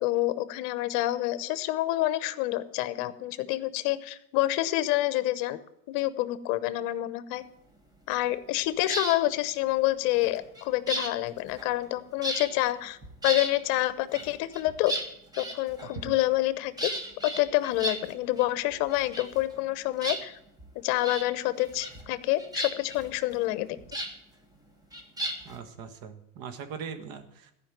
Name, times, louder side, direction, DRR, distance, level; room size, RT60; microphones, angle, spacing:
voice 1, 0.0-5.6 5.9-7.4 8.1-13.0 13.2-14.9 15.4-16.9 17.2-20.4 20.8-23.8, left 16 dB, 55° left, 14 dB, 1.0 m, -28 dB
sound 1, 8.8-9.2 10.1-11.9 12.2-12.7 13.0-13.6 14.1-16.1 16.8-18.5 18.7-19.7 20.0-20.7 21.0-21.3 21.6-22.1 22.4-24.1 24.9-25.6, right 1 dB, 10° right, 1.6 m, -35 dB
voice 2, 25.4-27.5, right 6 dB, 50° right, 9 dB, 1.6 m, -41 dB
14.0 x 5.4 x 9.1 m, 0.79 s
supercardioid pair, 135°, 44 cm